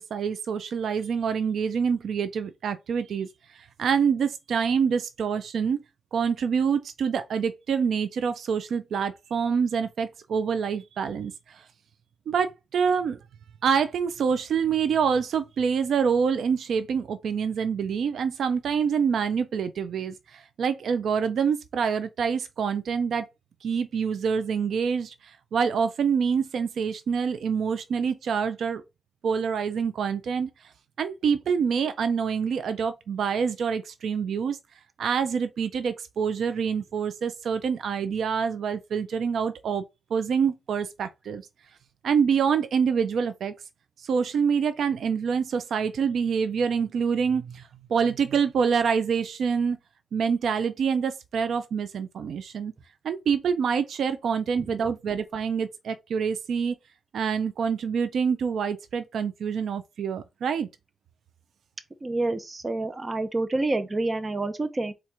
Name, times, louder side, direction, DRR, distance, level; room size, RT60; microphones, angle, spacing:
voice 1, 0.1-3.3 3.8-5.8 6.1-11.6 12.3-13.2 13.6-23.3 23.6-28.8 29.2-30.5 31.0-34.6 35.0-39.8 40.1-41.5 42.0-43.5 44.0-47.6 47.9-49.8 50.1-52.7 53.0-56.8 57.1-60.7, right 6 dB, 80° right, 0.5 m, -26 dB
voice 2, 62.0-64.9, right 2 dB, 30° right, 0.7 m, -28 dB
4.4 x 2.5 x 4.7 m
cardioid pair, 95°, 0 cm